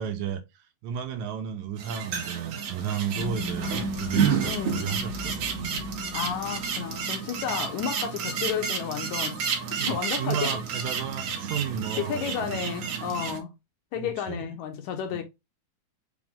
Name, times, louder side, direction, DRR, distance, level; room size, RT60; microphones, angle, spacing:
voice 1, 0.0-5.8 9.8-12.5 14.0-14.5 15.1-15.2, right 8 dB, 80° right, 1.9 m, -33 dB
sound 1, 1.8-13.4, right 7 dB, 65° right, 1.9 m, -31 dB
sound 2, 3.1-9.9, left 1 dB, 55° left, 1.1 m, -38 dB
voice 2, 4.5-5.0 6.1-9.4 9.9-10.6 12.0-13.5 13.9-15.2, left 8 dB, 75° left, 1.9 m, -32 dB
6.0 x 2.1 x 3.6 m
omnidirectional pair, 3.6 m